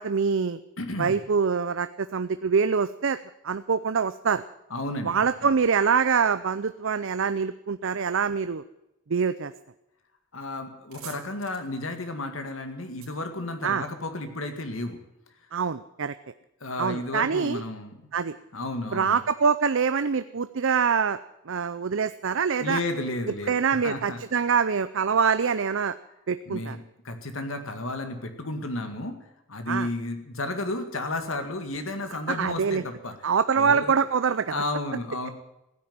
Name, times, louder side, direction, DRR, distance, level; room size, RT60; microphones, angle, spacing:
voice 1, 0.0-0.6 1.0-3.2 3.4-4.4 5.0-8.6 9.1-9.5 13.6-13.8 15.5-16.1 16.8-17.6 18.1-18.4 18.9-21.2 21.5-22.8 23.3-26.0 26.3-26.8 29.7-29.9 32.3-32.8 33.2-34.6, right 6 dB, 65° right, 12 dB, 0.6 m, -25 dB
voice 2, 0.8-1.2 4.7-5.1 10.3-15.0 16.6-17.9 18.5-19.2 22.6-24.2 26.5-26.8 27.0-29.2 29.5-33.1 33.6-34.0 34.5-35.3, left 2 dB, 70° left, 6 dB, 2.1 m, -32 dB
sound 1, 10.3-10.4 10.6-14.2, right 8 dB, 80° right, 4.1 m, -49 dB
16.0 x 9.6 x 9.4 m, 0.89 s
head